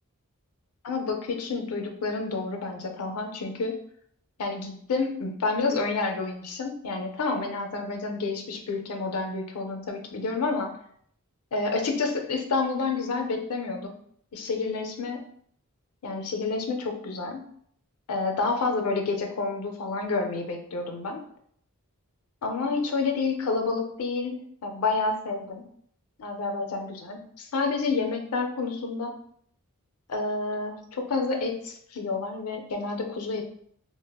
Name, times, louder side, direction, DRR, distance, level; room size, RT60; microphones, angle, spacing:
voice 1, 0.8-3.8 4.4-10.7 11.5-13.9 14.3-15.2 16.0-17.5 18.1-21.2 22.4-24.3 24.6-25.6 26.2-29.1 30.1-33.4, left 3 dB, 75° left, 4 dB, 0.5 m, -29 dB
3.3 x 2.1 x 2.2 m, 0.65 s
head